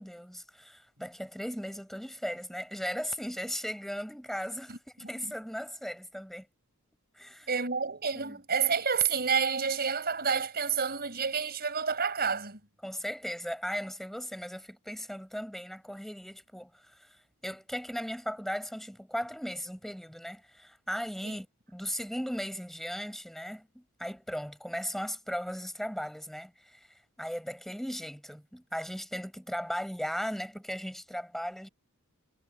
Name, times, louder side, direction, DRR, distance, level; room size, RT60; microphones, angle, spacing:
voice 1, 0.0-6.5 7.1-7.5 8.1-8.4 12.8-26.9 27.2-31.7, equal, ahead, 6.6 m, -37 dB
voice 2, 7.5-12.6 21.2-21.4, right 6 dB, 45° right, 5.7 m, -29 dB
head